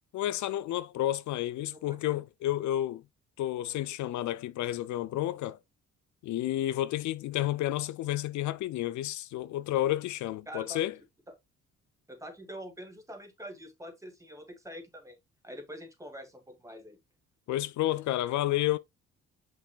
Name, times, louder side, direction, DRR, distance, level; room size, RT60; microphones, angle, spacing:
voice 1, 0.1-3.0 3.4-5.6 6.2-10.9 17.5-18.8, left 14 dB, 70° left, 0.5 m, -31 dB
voice 2, 1.7-2.1 10.5-10.8 12.1-15.2 15.4-17.0, equal, 10° right, 2.2 m, -45 dB
6.8 x 6.0 x 2.4 m
cardioid pair, 90°, 30 cm